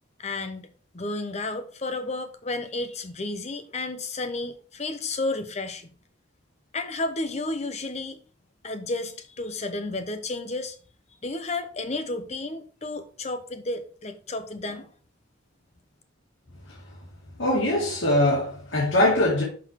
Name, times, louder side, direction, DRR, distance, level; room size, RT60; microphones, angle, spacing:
voice 1, 0.2-0.7 0.9-5.9 6.7-8.2 8.6-10.7 11.2-14.9, left 2 dB, 35° left, 0.8 m, -32 dB
voice 2, 17.4-19.4, left 1 dB, 75° left, 2.3 m, -22 dB
6.3 x 6.0 x 4.5 m
head